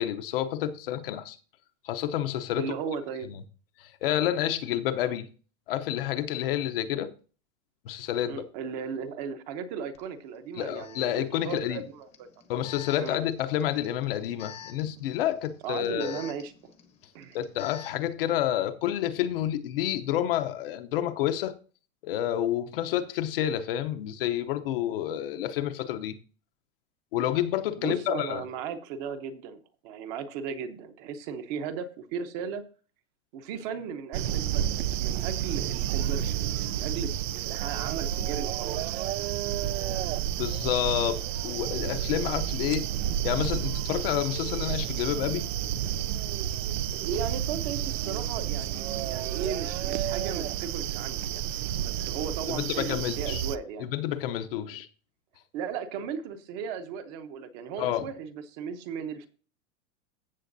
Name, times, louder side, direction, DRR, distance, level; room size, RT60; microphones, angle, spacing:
voice 1, 0.0-1.4 1.8-2.7 3.8-5.3 5.7-7.1 7.8-8.4 10.6-11.8 12.5-16.2 17.3-21.5 22.0-26.2 27.1-28.4 40.4-42.8 43.2-45.5 52.5-53.4 53.8-54.9 57.8-58.1, left 11 dB, 45° left, 0.8 m, -29 dB
voice 2, 2.6-3.3 6.9-7.1 8.3-12.3 13.0-13.2 15.6-16.7 17.1-17.4 27.8-32.6 33.3-39.0 42.6-42.8 46.9-51.4 51.8-53.9 54.6-54.8 55.5-59.3, right 7 dB, 30° right, 0.9 m, -36 dB
Alarm, 9.9-10.0 10.7-18.1, left 9 dB, 15° left, 0.9 m, -49 dB
sound 1, 34.1-53.6, right 11 dB, 75° right, 0.6 m, -30 dB
15.0 x 6.9 x 2.7 m
supercardioid pair, 170°, 38 cm